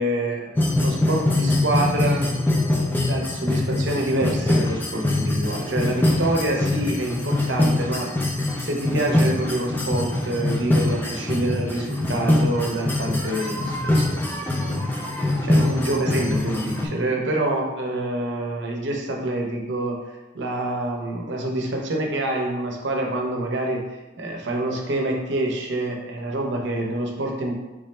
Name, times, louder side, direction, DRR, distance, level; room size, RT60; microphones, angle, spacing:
voice 1, 0.0-2.3 3.1-8.1 8.6-14.8 15.2-20.0 20.3-23.9 24.2-27.5, right 1 dB, 65° right, 1 dB, 0.6 m, -26 dB
sound 1, 0.6-16.9, left 1 dB, 10° left, 0.3 m, -23 dB
3.6 x 3.1 x 3.2 m, 1.0 s
head